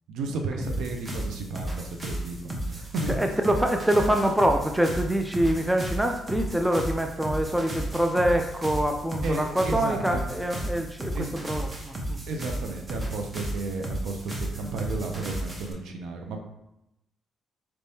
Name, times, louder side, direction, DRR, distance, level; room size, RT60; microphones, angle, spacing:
voice 1, 0.1-3.2 9.2-10.2 11.1-11.3 12.3-16.4, right 3 dB, 80° right, 3 dB, 0.5 m, -33 dB
sound 1, 0.6-15.7, right 1 dB, 25° right, 0.9 m, -34 dB
voice 2, 2.8-12.2 14.6-15.1, right 1 dB, 5° right, 4 dB, 0.4 m, -25 dB
4.4 x 3.4 x 2.7 m, 0.88 s
cardioid pair, 90°, 0 cm